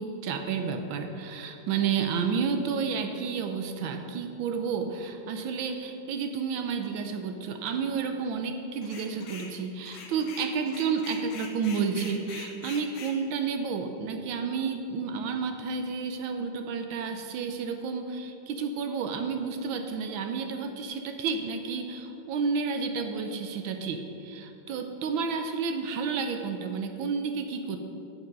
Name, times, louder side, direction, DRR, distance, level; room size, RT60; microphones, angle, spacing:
voice 1, 0.0-27.8, right 5 dB, 80° right, 6 dB, 1.4 m, -31 dB
sound 1, 8.8-9.5 9.9-13.2, left 5 dB, 75° left, 1.7 m, -44 dB
8.9 x 6.6 x 5.2 m, 2.8 s
omnidirectional pair, 2.2 m